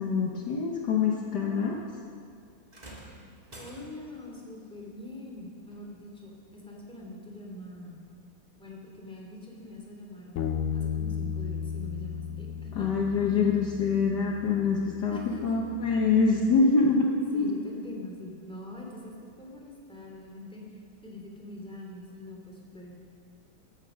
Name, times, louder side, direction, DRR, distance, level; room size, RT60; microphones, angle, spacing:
voice 1, 0.0-1.8 12.7-17.5, left 4 dB, 60° left, 0 dB, 1.5 m, -25 dB
sound 1, 2.7-4.2 5.7-5.9 6.7-6.8, right 1 dB, 20° right, 2.0 m, -48 dB
voice 2, 3.5-8.0 8.6-12.9 15.1-15.8 17.3-22.9, left 1 dB, 5° left, -2 dB, 2.6 m, -44 dB
Bass guitar, 10.4-16.6, left 7 dB, 85° left, 1.7 m, -36 dB
15.0 x 10.5 x 6.2 m, 2.2 s
omnidirectional pair, 2.2 m